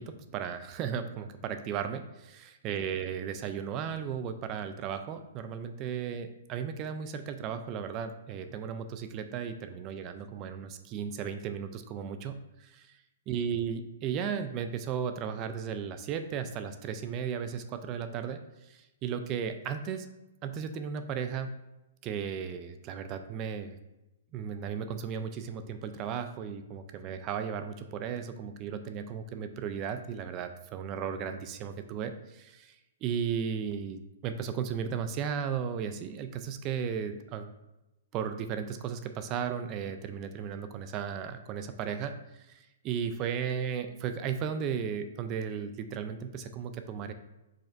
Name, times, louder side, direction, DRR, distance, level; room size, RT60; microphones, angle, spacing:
voice 1, 0.0-13.0 13.3-20.1 20.4-21.6 22.0-23.8 24.3-32.8 33.0-37.5 38.1-47.1, right 7 dB, 30° right, 9 dB, 0.4 m, -35 dB
4.9 x 4.2 x 2.5 m, 0.97 s
hypercardioid pair, 140°, 0 cm